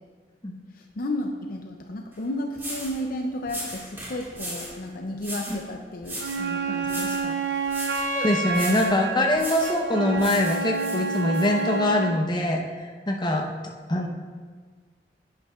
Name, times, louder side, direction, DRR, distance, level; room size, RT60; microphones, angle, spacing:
voice 1, 0.7-7.4, left 1 dB, 55° left, 3 dB, 0.6 m, -33 dB
sound 1, 2.1-2.2 2.6-3.0 3.5-4.8 5.2-5.6 6.0-6.5 6.8-7.3 7.7-8.1 8.5-8.9 9.4-9.8 10.2-11.5, right 1 dB, 15° right, 2.0 m, -37 dB
Wind instrument woodwind instrument, 6.2-12.2, right 3 dB, 75° right, 0.6 m, -29 dB
voice 2, 8.1-12.6 13.1-13.5 13.9-14.1, left 1 dB, 25° left, 1 dB, 0.9 m, -23 dB
9.8 x 8.6 x 2.4 m, 1.5 s
head